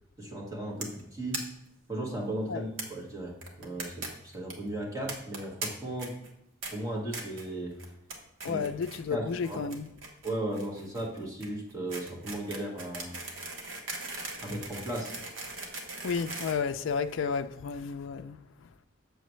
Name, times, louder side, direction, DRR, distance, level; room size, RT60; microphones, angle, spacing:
voice 1, 0.2-1.4 1.9-6.1 6.7-7.8 8.5-8.6 9.1-9.6 10.2-13.1 14.4-15.1, right 1 dB, 15° right, 1.9 m, -36 dB
sound 1, 0.8-1.0 1.3-1.4 1.7-1.8 2.0-2.1 2.8-2.9 3.4-4.1 4.3-4.5 5.1-5.7 6.0-6.3 6.6-6.7 7.1-7.5 7.8-8.1 8.4-9.0 9.3-17.3, right 3 dB, 70° right, 1.4 m, -39 dB
voice 2, 8.4-9.9 16.0-18.4, left 5 dB, 65° left, 0.4 m, -32 dB
7.5 x 6.8 x 3.1 m
head